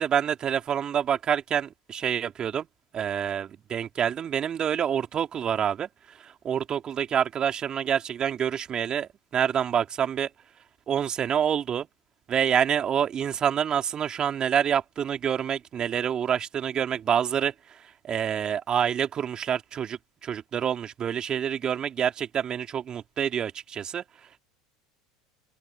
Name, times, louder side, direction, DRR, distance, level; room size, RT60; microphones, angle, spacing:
voice 1, 0.0-2.7 2.9-10.3 10.9-11.9 12.3-24.0, right 8 dB, 35° right, 2.8 m, -27 dB
open air
hypercardioid pair, 80°, 2 cm